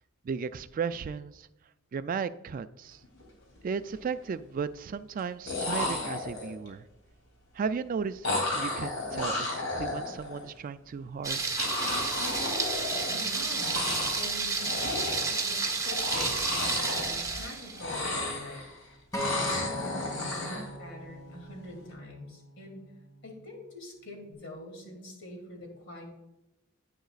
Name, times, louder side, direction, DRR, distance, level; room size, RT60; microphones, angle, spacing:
voice 1, 0.2-1.5 1.9-3.0 3.6-6.8 7.5-8.3 8.5-11.4, right 6 dB, 40° right, 13 dB, 0.3 m, -35 dB
sound 1, 3.0-3.2 3.6-4.2 5.2-5.3 5.5-6.7 8.2-10.4 11.6-13.3 13.5-14.3 14.6-15.4 15.8-17.5 17.7-18.8 19.1-20.7, left 2 dB, 75° left, 2.9 m, -33 dB
Thunder, 11.2-17.8, right 4 dB, 15° right, 1.1 m, -31 dB
voice 2, 12.9-13.9 14.2-18.6 19.3-22.8 23.2-26.0, left 1 dB, 60° left, 1 dB, 2.7 m, -44 dB
Acoustic guitar, 19.1-23.4 24.2-24.3, left 1 dB, 15° left, 1.3 m, -40 dB
10.5 x 9.2 x 2.4 m, 0.97 s
head